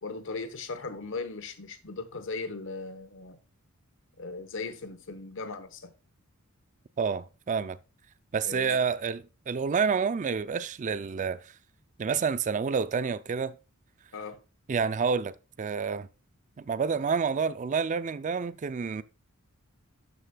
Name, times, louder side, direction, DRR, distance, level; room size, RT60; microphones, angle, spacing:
voice 1, 0.0-3.4 4.2-5.9 8.5-8.8 14.1-14.4, left 3 dB, 60° left, 1.1 m, -38 dB
voice 2, 7.0-7.8 8.3-11.5 12.0-13.5 14.7-16.1 16.6-19.0, right 5 dB, 35° right, 0.4 m, -29 dB
12.5 x 6.6 x 2.3 m
head